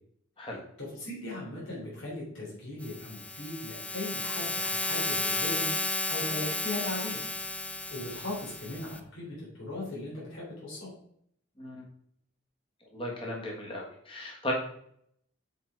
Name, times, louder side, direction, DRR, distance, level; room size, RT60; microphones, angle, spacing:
voice 1, 0.8-7.2 7.9-10.9, left 2 dB, 80° left, -5 dB, 3.3 m, -38 dB
sound 1, 2.8-9.0, left 2 dB, 5° left, 0.4 m, -33 dB
voice 2, 12.9-14.5, equal, 25° left, -1 dB, 1.4 m, -36 dB
7.0 x 4.8 x 4.6 m, 0.68 s
head